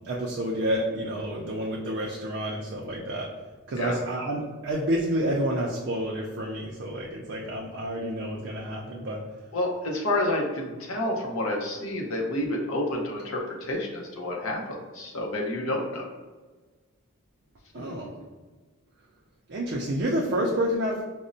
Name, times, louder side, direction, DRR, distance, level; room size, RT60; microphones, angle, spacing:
voice 1, 0.0-3.3 3.7-9.2 17.7-18.1 19.5-21.0, right 1 dB, 50° right, -3 dB, 0.4 m, -29 dB
voice 2, 9.5-16.0, left 1 dB, 70° left, -1 dB, 0.7 m, -29 dB
5.1 x 2.0 x 2.5 m, 1.3 s
head